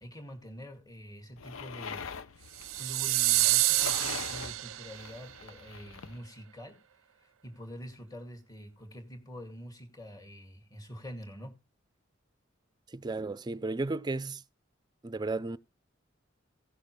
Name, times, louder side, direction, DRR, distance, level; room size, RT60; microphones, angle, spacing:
voice 1, 0.0-2.4 2.8-6.8 7.4-11.6, equal, 20° left, 2.1 m, -46 dB
sound 1, 1.4-6.2, left 6 dB, 85° left, 0.7 m, -43 dB
sound 2, 2.6-5.1, right 18 dB, 80° right, 0.4 m, -27 dB
voice 2, 12.9-14.4 15.0-15.6, right 3 dB, 20° right, 0.4 m, -34 dB
17.0 x 6.6 x 3.2 m
head